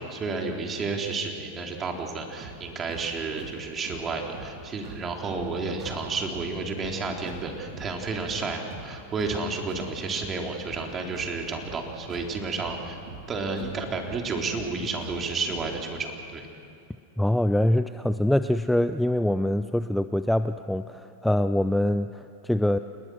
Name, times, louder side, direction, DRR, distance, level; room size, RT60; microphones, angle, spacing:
voice 1, 0.0-13.0 13.3-16.5, right 3 dB, 25° right, 2 dB, 3.6 m, -31 dB
sound 1, 2.4-15.8, right 4 dB, 50° right, 3.9 m, -44 dB
voice 2, 17.2-22.8, left 1 dB, 5° left, 11 dB, 0.5 m, -24 dB
28.5 x 19.5 x 6.4 m, 2.6 s
hypercardioid pair, 115°, 0 cm